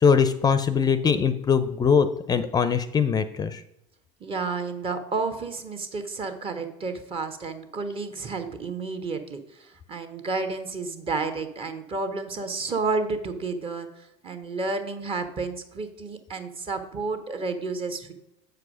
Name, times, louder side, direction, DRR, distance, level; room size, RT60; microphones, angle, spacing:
voice 1, 0.0-3.6, left 6 dB, 25° left, 11 dB, 0.5 m, -22 dB
voice 2, 4.2-13.9 14.2-18.1, right 4 dB, 35° right, 8 dB, 1.3 m, -31 dB
7.8 x 4.8 x 6.2 m, 0.86 s
supercardioid pair, 105°, 16 cm